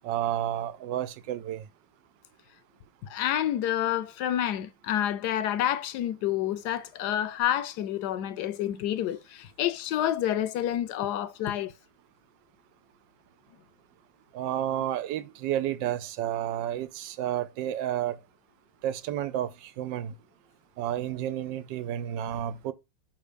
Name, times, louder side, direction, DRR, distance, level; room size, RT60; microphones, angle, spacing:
voice 1, 0.0-1.6 14.3-18.2 18.8-20.1 20.8-22.7, right 11 dB, 90° right, 1.3 m, -31 dB
voice 2, 3.0-11.7, left 11 dB, 75° left, 1.1 m, -29 dB
5.6 x 3.6 x 5.0 m
omnidirectional pair, 1.9 m